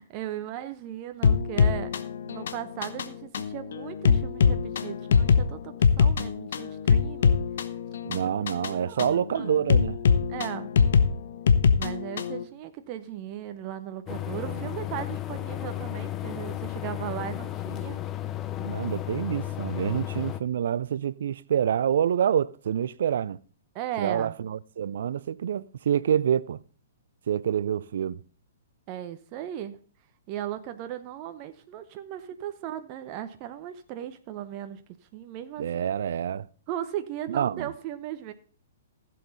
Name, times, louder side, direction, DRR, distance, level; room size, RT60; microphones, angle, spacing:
voice 1, 0.0-1.9 2.3-7.4 8.6-9.1 9.3-9.5 10.3-10.7 11.8-18.0 23.7-24.4 28.9-29.8 30.3-34.8 35.1-35.8 36.7-38.3, right 11 dB, 35° right, 0.8 m, -37 dB
sound 1, 1.2-12.4, left 6 dB, 60° left, 0.9 m, -23 dB
voice 2, 8.0-10.0 14.4-14.7 18.6-23.4 24.0-26.6 27.3-28.2 35.6-36.5 37.3-37.7, right 9 dB, 60° right, 0.5 m, -27 dB
sound 2, 14.1-20.4, left 13 dB, 25° left, 0.6 m, -34 dB
15.0 x 7.7 x 4.1 m
figure-of-eight pair, 115°, 0 cm